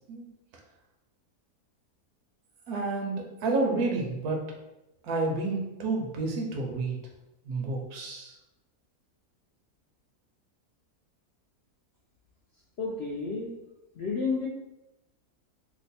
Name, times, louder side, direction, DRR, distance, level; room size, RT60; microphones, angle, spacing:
voice 1, 2.7-4.4 5.0-7.0 7.4-8.3, right 3 dB, 80° right, 0 dB, 1.2 m, -30 dB
voice 2, 12.8-13.5 14.0-14.5, left 4 dB, 70° left, -4 dB, 0.6 m, -30 dB
3.0 x 2.1 x 4.1 m, 0.94 s
omnidirectional pair, 1.6 m